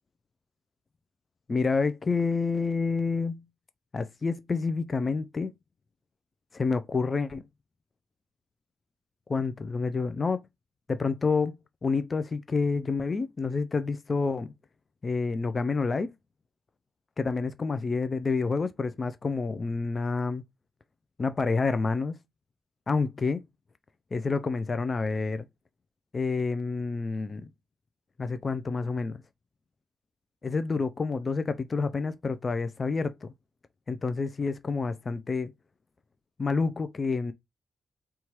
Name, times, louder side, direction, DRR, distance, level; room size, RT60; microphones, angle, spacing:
voice 1, 1.5-3.4 3.9-5.5 6.5-7.4 9.3-10.4 10.9-14.5 15.0-16.1 17.2-20.4 21.2-22.2 22.9-23.4 24.1-25.5 26.1-27.5 28.2-29.2 30.4-33.3 33.9-35.5 36.4-37.3, left 4 dB, 40° left, 0.3 m, -28 dB
2.8 x 2.3 x 3.0 m
supercardioid pair, 55°, 0 cm